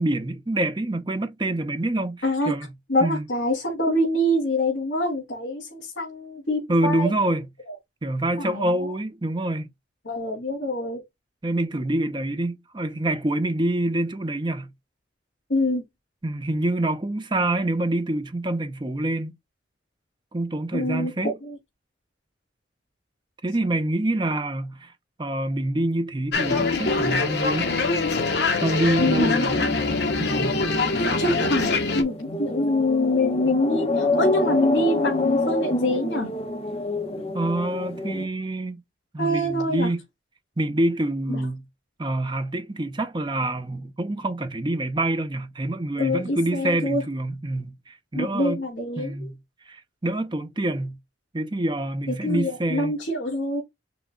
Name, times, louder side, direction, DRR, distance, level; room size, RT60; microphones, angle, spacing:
voice 1, 0.0-2.7 3.0-3.2 6.7-7.5 8.0-9.7 11.4-14.7 16.2-19.3 20.3-21.3 23.4-24.9 25.2-27.8 28.6-29.9 30.2-30.6 37.3-38.8 39.1-40.0 40.6-41.6 42.0-48.6 49.0-49.4 49.7-51.0 51.3-53.0, right 1 dB, 25° right, 0.6 m, -26 dB
voice 2, 2.2-2.5 2.9-7.1 7.7-7.8 8.4-8.9 10.0-11.0 15.5-15.8 20.7-21.6 29.0-29.7 30.9-31.7 31.9-36.3 39.2-39.9 41.3-41.4 46.0-47.0 48.1-49.3 52.1-53.6, left 1 dB, 75° left, 2.7 m, -25 dB
sound 1, 26.3-32.0, left 3 dB, 60° left, 1.0 m, -23 dB
sound 2, 29.0-38.3, left 2 dB, 30° left, 0.8 m, -28 dB
5.8 x 2.2 x 3.6 m
head